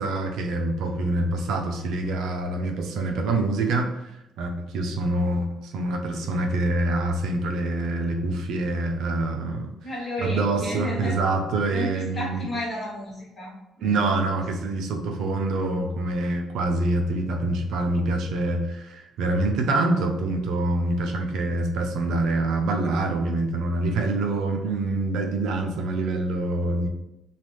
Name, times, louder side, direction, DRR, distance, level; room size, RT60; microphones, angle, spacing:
voice 1, 0.0-3.9 4.4-9.7 10.2-12.4 13.8-26.9, right 2 dB, 80° right, 3 dB, 0.5 m, -25 dB
voice 2, 9.8-11.2 11.7-13.5 13.8-14.0, left 1 dB, 30° left, -5 dB, 1.1 m, -32 dB
3.1 x 2.3 x 3.3 m, 0.88 s
cardioid pair, 135°, 0 cm